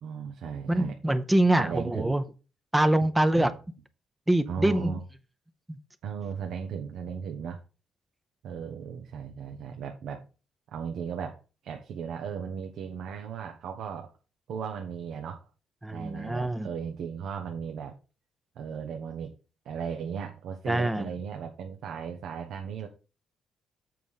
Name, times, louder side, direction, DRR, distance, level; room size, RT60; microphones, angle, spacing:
voice 1, 0.0-1.0 1.6-2.1 3.3-3.5 4.5-5.0 6.0-7.6 8.4-10.2 10.7-11.4 11.6-14.1 14.5-15.4 15.9-17.9 18.6-19.3 19.6-22.9, right 7 dB, 75° right, 1.1 m, -36 dB
voice 2, 0.7-2.2 2.7-3.5 4.3-5.0 5.7-5.8 15.8-16.7 20.7-21.1, right 1 dB, 10° right, 0.6 m, -24 dB
7.8 x 4.9 x 5.4 m
cardioid pair, 120°, 0 cm